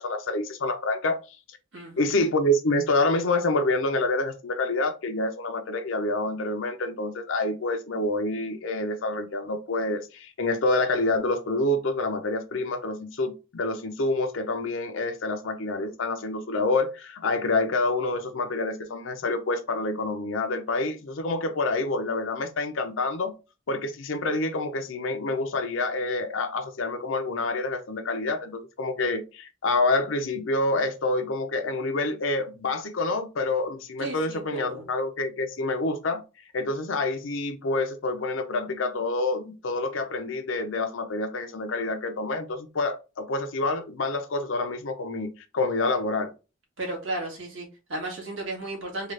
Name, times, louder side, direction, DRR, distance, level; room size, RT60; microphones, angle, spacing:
voice 1, 0.0-1.6 2.0-23.3 23.7-36.2 36.5-46.3, left 2 dB, 65° left, 0.6 m, -27 dB
voice 2, 1.7-2.1 34.0-34.9 46.8-49.1, right 2 dB, 65° right, 1.7 m, -34 dB
3.7 x 2.4 x 3.2 m
head